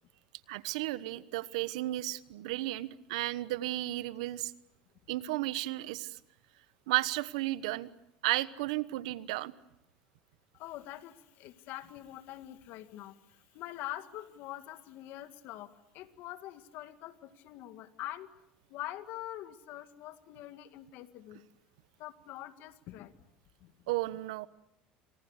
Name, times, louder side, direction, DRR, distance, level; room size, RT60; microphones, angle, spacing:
voice 1, 0.5-4.5 5.1-6.2 6.9-7.9 8.2-9.5 23.9-24.5, right 17 dB, 85° right, 16 dB, 1.1 m, -33 dB
voice 2, 10.5-18.3 18.7-21.4 22.0-23.1 23.6-23.7, left 14 dB, 65° left, 10 dB, 2.1 m, -44 dB
28.5 x 26.5 x 6.6 m, 0.81 s
supercardioid pair, 95°, 4 cm